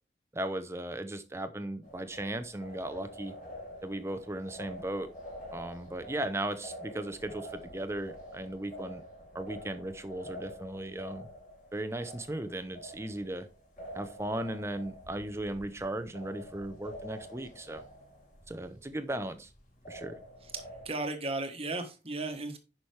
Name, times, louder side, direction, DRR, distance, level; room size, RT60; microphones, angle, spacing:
voice 1, 0.3-3.3 3.8-5.1 5.5-9.0 9.3-11.3 11.7-13.5 13.9-17.8 18.5-19.5 19.9-20.2, right 1 dB, 15° right, 0.9 m, -37 dB
sound 1, 1.8-20.9, equal, 45° left, 4.0 m, -48 dB
voice 2, 20.8-22.6, right 2 dB, 35° right, 1.5 m, -35 dB
10.0 x 6.1 x 3.4 m
head